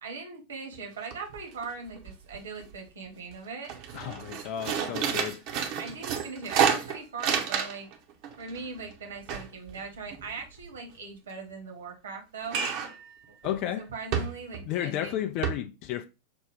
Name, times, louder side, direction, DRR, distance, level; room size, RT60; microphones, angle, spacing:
voice 1, 0.0-3.7 5.7-7.9 8.4-12.7 13.3-13.4 13.8-15.2, right 4 dB, 65° right, 1.1 m, -40 dB
sound 1, 0.7-0.8 1.1-1.6 1.9-2.8 3.2-3.3 3.6-7.9 8.2-10.7 12.5-13.0 13.4-13.6 14.1-14.7 15.0-15.1 15.4-15.5, right 7 dB, 45° right, 0.7 m, -30 dB
voice 2, 3.9-5.4 13.4-13.9 14.6-16.1, left 11 dB, 40° left, 0.4 m, -32 dB
5.9 x 2.1 x 3.5 m
figure-of-eight pair, 90°, 0 cm